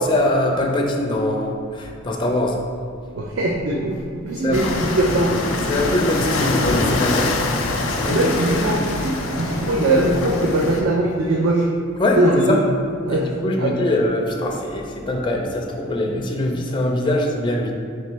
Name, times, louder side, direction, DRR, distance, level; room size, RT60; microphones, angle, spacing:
voice 1, 0.0-2.6 4.4-4.6 5.7-8.7 12.0-12.2 12.5-12.6 13.0-17.7, left 1 dB, 25° left, 1 dB, 0.4 m, -23 dB
voice 2, 3.1-5.4 7.9-11.7 12.2-12.6 13.0-13.9, right 1 dB, 65° right, -2 dB, 0.4 m, -21 dB
sound 1, 4.5-10.8, left 2 dB, 80° left, 0.5 m, -24 dB
3.3 x 3.1 x 4.4 m, 2.3 s
head